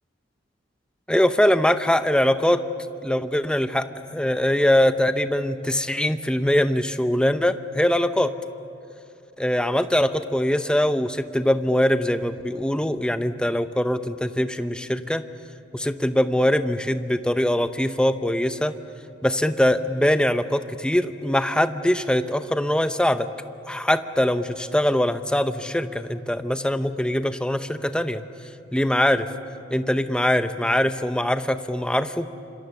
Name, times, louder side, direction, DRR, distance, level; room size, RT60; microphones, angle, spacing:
voice 1, 1.1-2.6 3.0-8.3 9.4-15.2 15.7-18.7 19.2-23.3 23.7-28.2 28.7-29.3 29.7-32.3, left 1 dB, 5° left, 10 dB, 0.7 m, -22 dB
26.5 x 26.0 x 7.1 m, 2.7 s
head